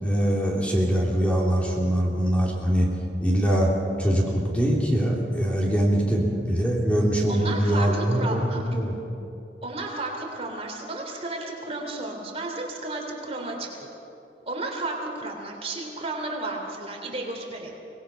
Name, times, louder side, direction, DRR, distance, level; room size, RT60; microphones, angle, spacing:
voice 1, 0.0-2.9 3.2-3.7 4.0-8.4 8.7-9.0, equal, 10° left, -3 dB, 2.9 m, -23 dB
voice 2, 7.3-8.6 9.6-13.9 14.5-17.7, right 2 dB, 35° right, 1 dB, 3.0 m, -33 dB
24.5 x 19.0 x 5.7 m, 2.7 s
head